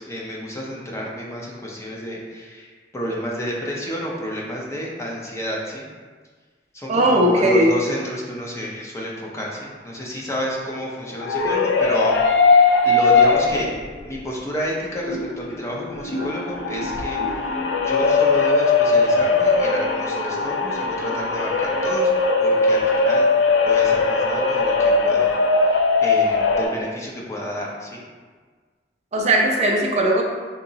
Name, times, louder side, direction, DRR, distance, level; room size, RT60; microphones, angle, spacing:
voice 1, 0.0-2.7 2.9-5.9 6.7-12.4 12.8-13.7 14.0-17.5 17.8-22.1 22.4-23.3 23.6-25.3 26.0-28.0, equal, 15° left, -3 dB, 0.5 m, -30 dB
voice 2, 6.9-7.7 29.1-30.2, right 1 dB, 40° right, 0 dB, 0.4 m, -18 dB
sound 1, 11.0-13.9 14.3-14.4 15.0-26.6, left 3 dB, 90° left, 0.4 m, -19 dB
3.7 x 2.8 x 2.7 m, 1.5 s
head